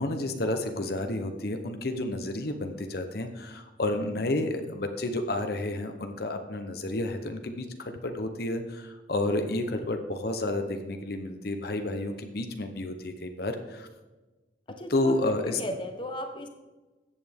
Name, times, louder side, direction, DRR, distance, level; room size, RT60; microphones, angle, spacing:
voice 1, 0.0-13.9 14.9-15.6, left 2 dB, 55° left, 6 dB, 0.8 m, -31 dB
voice 2, 14.7-15.1 15.5-16.5, left 1 dB, 25° left, 5 dB, 0.9 m, -36 dB
14.5 x 8.5 x 3.5 m, 1.2 s
head